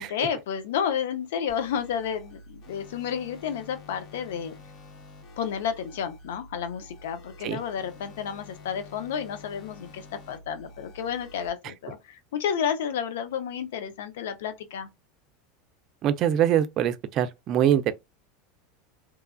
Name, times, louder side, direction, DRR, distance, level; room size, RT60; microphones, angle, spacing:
voice 1, 0.0-4.6 5.4-14.9, left 8 dB, 75° left, 0.6 m, -31 dB
sound 1, 1.5-11.5, left 2 dB, 55° left, 1.0 m, -48 dB
voice 2, 16.0-17.9, right 10 dB, 50° right, 0.4 m, -23 dB
3.0 x 2.3 x 2.2 m
hypercardioid pair, 95°, 0 cm